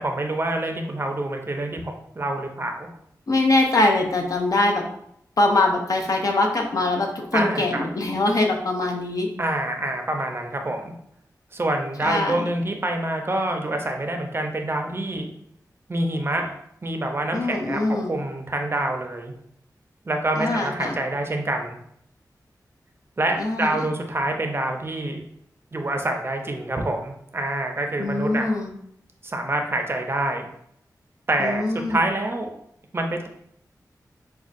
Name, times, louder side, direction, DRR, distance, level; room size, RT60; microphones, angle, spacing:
voice 1, 0.0-2.9 7.3-7.8 9.4-10.9 11.5-15.3 15.9-16.5 16.8-19.3 20.1-21.8 23.2-25.2 25.7-28.4 29.2-30.5 31.3-32.5 32.9-33.3, right 1 dB, 35° right, 3 dB, 0.5 m, -26 dB
voice 2, 3.3-4.8 5.4-9.3 12.0-12.5 17.3-18.1 20.3-21.0 23.4-23.9 28.0-28.7 31.4-32.1, left 2 dB, 60° left, 2 dB, 0.6 m, -23 dB
5.1 x 2.2 x 2.5 m, 0.71 s
wide cardioid pair, 70°, 7 cm